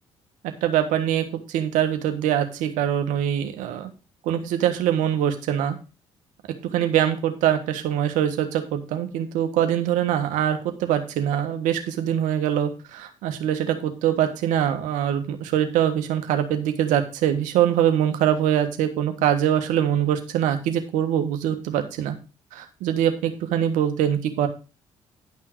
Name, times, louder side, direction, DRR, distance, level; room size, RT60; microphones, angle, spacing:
voice 1, 0.6-3.9 4.2-5.8 6.7-22.2 22.5-24.5, right 10 dB, 75° right, 7 dB, 1.4 m, -23 dB
10.5 x 5.7 x 4.6 m, 0.32 s
hypercardioid pair, 50°, 13 cm